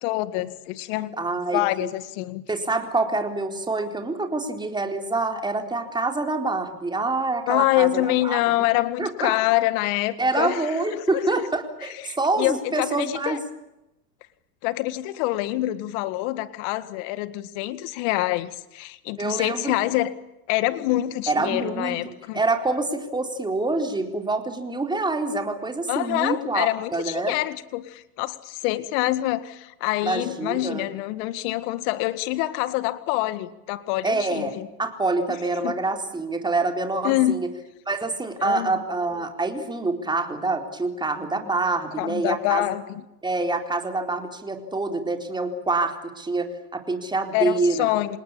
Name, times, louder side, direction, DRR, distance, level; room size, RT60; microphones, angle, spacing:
voice 1, 0.0-1.2 1.5-2.4 7.5-11.4 12.0-13.4 14.6-20.1 20.5-22.4 25.9-34.7 35.3-35.4 35.6-35.7 37.0-37.4 38.4-38.8 42.0-43.0 47.3-48.2, left 16 dB, 55° left, 13 dB, 2.0 m, -26 dB
voice 2, 1.2-1.9 2.5-8.4 9.0-9.3 10.2-13.4 19.2-19.7 21.3-27.4 30.0-30.9 34.0-37.5 37.9-42.6 43.2-47.9, right 3 dB, 10° right, 4 dB, 4.1 m, -26 dB
27.0 x 20.0 x 8.7 m, 0.90 s
hypercardioid pair, 120°, 48 cm